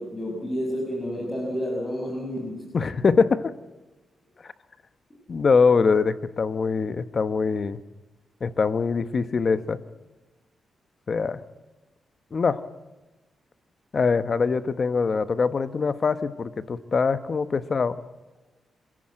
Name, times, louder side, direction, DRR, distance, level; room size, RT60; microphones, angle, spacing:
voice 1, 0.0-2.7, equal, 25° left, -1 dB, 5.8 m, -30 dB
voice 2, 2.7-3.5 5.3-7.8 8.4-9.8 11.1-11.4 12.3-12.6 13.9-18.0, left 5 dB, 45° left, 12 dB, 1.1 m, -23 dB
26.5 x 16.5 x 7.8 m, 1.1 s
cardioid pair, 95°, 0 cm